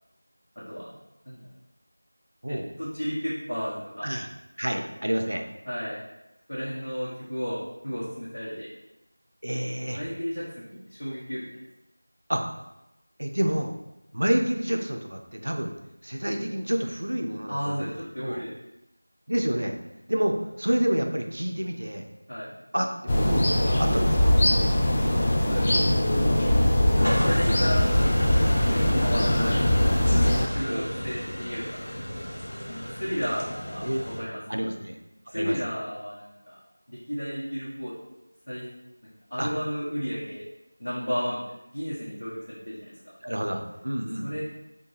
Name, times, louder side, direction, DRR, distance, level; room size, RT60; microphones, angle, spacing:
voice 1, 2.5-4.2 5.7-6.0 6.5-8.7 9.9-11.4 17.5-18.5 22.3-22.5 25.1-26.2 27.1-27.9 28.4-29.7 30.5-31.9 32.7-34.4 35.3-36.6 36.9-37.9 38.5-38.7 39.3-40.4 40.8-41.4 41.7-43.1 44.2-44.4, equal, 80° left, -9 dB, 1.2 m, -33 dB
voice 2, 4.6-5.5 9.4-10.0 12.3-12.4 13.2-13.7 14.1-15.7 16.0-18.4 19.3-19.8 20.1-22.0 22.7-24.4 28.8-29.1 30.7-31.0 33.8-34.0 34.5-35.0 35.3-35.6 39.4-39.5 43.2-44.3, equal, 60° right, 4 dB, 0.5 m, -28 dB
sound 1, 23.1-30.5, left 1 dB, 15° left, 0.3 m, -22 dB
sound 2, 27.0-34.2, equal, 60° left, 1.1 m, -33 dB
4.3 x 2.6 x 3.2 m, 0.92 s
figure-of-eight pair, 175°, 0 cm